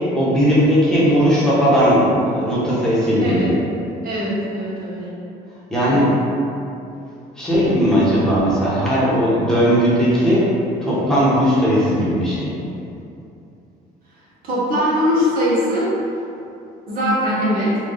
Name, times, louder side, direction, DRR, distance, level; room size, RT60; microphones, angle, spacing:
voice 1, 0.1-3.6 5.7-6.1 7.4-10.5 10.8-12.5, equal, 5° left, -9 dB, 1.1 m, -17 dB
voice 2, 3.2-3.5 4.0-5.1 5.9-6.2 14.4-15.9 16.9-17.8, equal, 55° right, -7 dB, 1.0 m, -21 dB
3.5 x 2.3 x 3.8 m, 2.7 s
cardioid pair, 110°, 17 cm